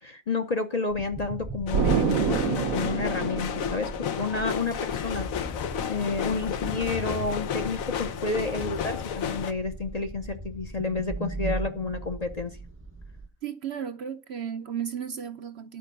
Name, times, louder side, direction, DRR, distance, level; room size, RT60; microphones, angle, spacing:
voice 1, 0.0-3.9 4.2-5.3 5.9-12.6, left 3 dB, 35° left, 0.7 m, -30 dB
sound 1, 0.9-13.3, right 3 dB, 15° right, 0.6 m, -38 dB
sound 2, 1.7-9.5, left 9 dB, 75° left, 1.2 m, -32 dB
Explosion, 1.7-4.4, right 7 dB, 80° right, 1.4 m, -27 dB
voice 2, 13.4-15.8, right 8 dB, 60° right, 0.8 m, -34 dB
11.0 x 4.9 x 6.8 m
omnidirectional pair, 1.5 m